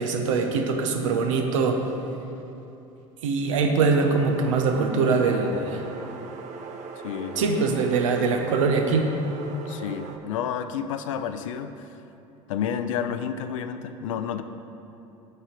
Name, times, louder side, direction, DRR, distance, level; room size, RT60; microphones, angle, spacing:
voice 1, 0.0-1.9 3.2-5.8 7.4-9.1, right 4 dB, 75° right, 4 dB, 0.9 m, -23 dB
sound 1, 3.9-10.2, right 5 dB, 45° right, 0.8 m, -40 dB
voice 2, 7.0-7.4 9.7-11.8 12.5-14.4, left 8 dB, 70° left, 10 dB, 0.5 m, -30 dB
6.4 x 5.5 x 6.6 m, 2.8 s
hypercardioid pair, 75°, 17 cm